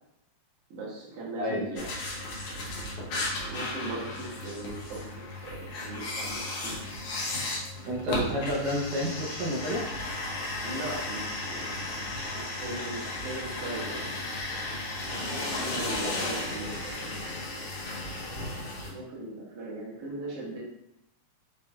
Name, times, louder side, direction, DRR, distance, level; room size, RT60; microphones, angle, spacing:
voice 1, 0.7-1.9 3.4-6.7 10.6-14.5 15.3-17.3 17.5-17.8 18.9-20.6, right 2 dB, 60° right, -5 dB, 1.7 m, -39 dB
sound 1, 1.8-18.9, left 2 dB, 65° left, 1.5 m, -34 dB
voice 2, 7.8-9.8, equal, 80° right, -2 dB, 2.2 m, -30 dB
5.6 x 3.1 x 2.3 m, 0.83 s
omnidirectional pair, 3.6 m